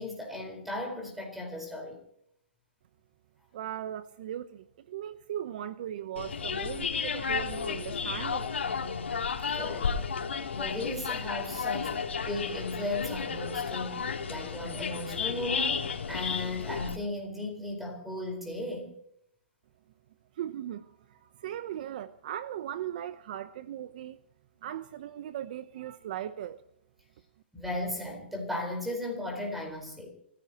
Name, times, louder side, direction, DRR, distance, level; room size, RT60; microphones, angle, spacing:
voice 1, 0.0-2.0 9.5-10.1 10.5-14.0 14.3-18.9 27.5-30.1, left 1 dB, 5° right, 4.8 m, -36 dB
voice 2, 3.5-8.5 20.4-24.2 24.6-26.6, right 11 dB, 45° right, 0.9 m, -38 dB
sound 1, 6.2-17.0, left 6 dB, 85° left, 3.0 m, -33 dB
27.5 x 16.0 x 3.0 m
hypercardioid pair, 150°, 6 cm